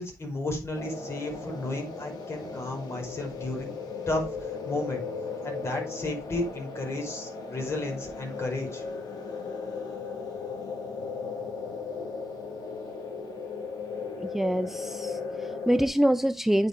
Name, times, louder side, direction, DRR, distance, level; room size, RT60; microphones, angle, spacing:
voice 1, 0.0-3.7 4.1-5.0 5.4-8.8, left 2 dB, 40° left, 4.9 m, -33 dB
sound 1, 0.8-15.9, left 4 dB, 85° left, 2.4 m, -36 dB
voice 2, 14.2-16.7, equal, 5° right, 0.4 m, -25 dB
9.0 x 5.8 x 4.8 m
cardioid pair, 90°, 7 cm